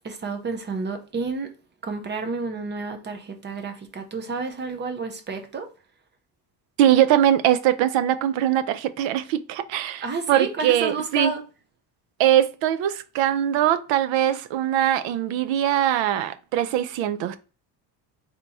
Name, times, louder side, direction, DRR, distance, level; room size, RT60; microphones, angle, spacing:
voice 1, 0.0-1.5 1.8-5.7 10.0-11.4, right 4 dB, 25° right, 0.5 m, -30 dB
voice 2, 6.8-11.3 12.2-17.4, right 11 dB, 80° right, 0.6 m, -21 dB
3.5 x 2.9 x 4.0 m
cardioid pair, 165°, 44 cm